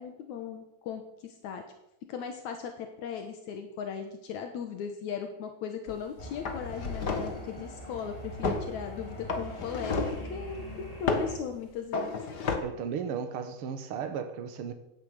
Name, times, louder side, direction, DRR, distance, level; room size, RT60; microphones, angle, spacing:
voice 1, 0.0-1.6 2.1-12.2, left 7 dB, 80° left, 5 dB, 2.6 m, -38 dB
sound 1, 5.9-6.1 6.5-7.4 8.4-8.7 9.3-10.3 11.1-11.4 11.9-12.6, left 4 dB, 40° left, 1.7 m, -31 dB
sound 2, 6.2-11.4, equal, 15° left, 2.1 m, -43 dB
voice 2, 12.6-14.7, right 7 dB, 55° right, 8 dB, 2.1 m, -35 dB
16.5 x 10.5 x 6.5 m, 0.84 s
omnidirectional pair, 3.3 m